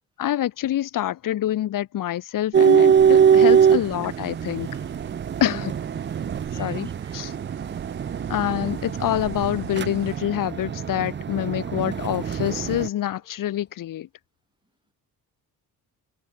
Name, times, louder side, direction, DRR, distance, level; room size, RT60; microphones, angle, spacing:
voice 1, 0.2-4.7 5.4-5.7 6.6-7.3 8.3-14.1, left 12 dB, 60° left, 1.2 m, -26 dB
sound 1, 2.5-12.9, right 8 dB, 30° right, 0.7 m, -22 dB
sound 2, 3.0-10.2, right 14 dB, 85° right, 3.9 m, -43 dB
voice 2, 5.5-6.2 6.5-7.3, right 2 dB, 10° right, 3.9 m, -44 dB
sound 3, 7.9-13.7, left 5 dB, 25° left, 7.1 m, -50 dB
open air
cardioid pair, 145°, 37 cm